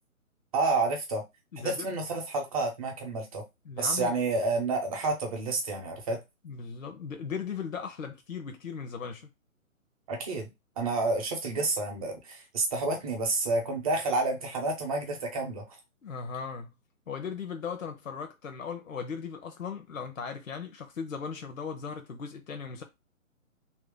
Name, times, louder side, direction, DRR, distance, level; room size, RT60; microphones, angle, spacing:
voice 1, 0.5-1.2 1.6-3.4 3.8-6.2 10.1-10.5 10.8-15.8, right 3 dB, 25° right, 0.9 m, -29 dB
voice 2, 1.5-2.0 3.6-4.1 6.4-9.3 16.0-16.7 17.1-22.8, left 6 dB, 65° left, 0.8 m, -37 dB
3.0 x 2.8 x 3.5 m
figure-of-eight pair, 135°, 42 cm